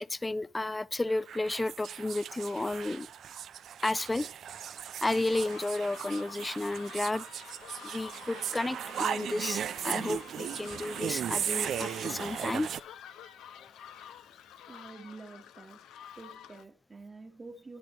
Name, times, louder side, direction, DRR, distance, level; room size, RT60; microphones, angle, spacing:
voice 1, 0.0-3.1 3.8-4.3 5.0-7.2 7.8-12.8, left 2 dB, 15° left, 0.4 m, -32 dB
sound 1, 1.1-12.8, right 9 dB, 65° right, 0.4 m, -37 dB
sound 2, 5.1-16.6, left 9 dB, 85° left, 0.9 m, -50 dB
voice 2, 14.7-15.8 16.2-17.8, right 3 dB, 25° right, 1.1 m, -48 dB
11.0 x 10.0 x 3.0 m
cardioid pair, 90°, 0 cm